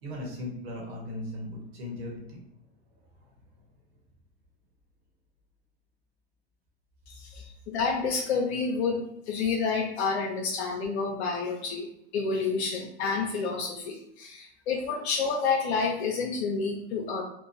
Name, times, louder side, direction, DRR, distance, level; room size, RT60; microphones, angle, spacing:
voice 1, 0.0-2.4, left 1 dB, 70° right, -1 dB, 1.2 m, -37 dB
voice 2, 7.1-11.9 12.1-17.2, left 4 dB, 75° left, 0 dB, 0.6 m, -29 dB
3.0 x 2.1 x 2.6 m, 0.80 s
hypercardioid pair, 110°, 32 cm